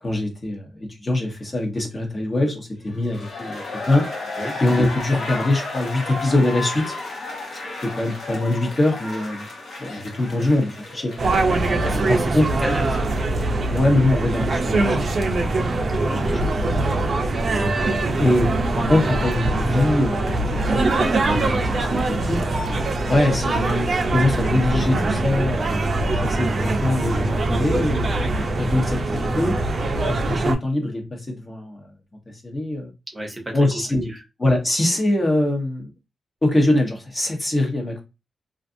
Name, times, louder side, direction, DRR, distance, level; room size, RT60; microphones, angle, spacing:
voice 1, 0.0-3.6 3.9-4.0 4.6-7.0 7.8-9.4 9.8-11.1 12.1-12.7 13.7-15.1 16.2-16.4 17.1-17.2 18.2-22.5 23.1-25.8 26.2-29.6 30.1-31.9 32.4-32.9 33.5-34.1 34.4-35.9 36.4-38.0, left 1 dB, 30° left, 0.8 m, -23 dB
sound 1, 2.9-13.8 14.1-14.2, left 3 dB, 80° left, 0.9 m, -34 dB
sound 2, 11.2-30.5, right 2 dB, 50° right, 0.5 m, -22 dB
voice 2, 11.8-13.1 15.9-16.5 33.1-33.6 34.0-34.2, right 1 dB, 15° right, 0.8 m, -31 dB
2.5 x 2.4 x 2.5 m
wide cardioid pair, 115°, 0 cm